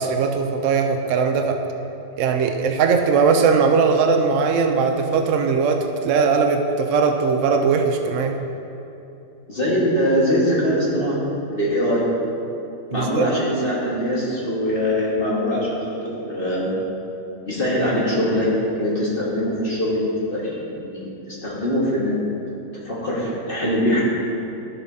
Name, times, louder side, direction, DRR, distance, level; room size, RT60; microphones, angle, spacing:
voice 1, 0.0-1.6 2.2-8.4 12.9-13.3, right 5 dB, 75° right, 4 dB, 0.7 m, -19 dB
voice 2, 9.5-11.2 11.5-12.0 12.9-15.8 16.0-16.7 17.5-18.5 18.8-20.0 20.3-22.1 22.8-24.0, equal, 30° left, -6 dB, 1.6 m, -22 dB
12.5 x 7.0 x 2.7 m, 2.9 s
omnidirectional pair, 1.9 m